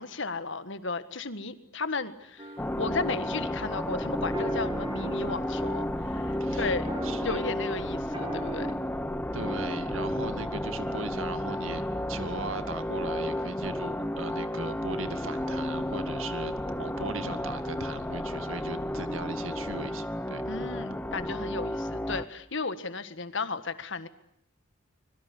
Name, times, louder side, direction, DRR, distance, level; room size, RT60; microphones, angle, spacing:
voice 1, 0.0-6.9 7.2-8.7 20.5-24.1, left 3 dB, 60° left, 12 dB, 1.7 m, -34 dB
sound 1, 2.4-8.7, right 2 dB, 25° right, 1.9 m, -42 dB
sound 2, 2.6-22.2, left 1 dB, 10° left, 1.1 m, -32 dB
voice 2, 7.0-7.4 9.3-20.4, right 3 dB, 75° right, 10 dB, 2.2 m, -38 dB
25.0 x 22.5 x 10.0 m, 0.73 s
head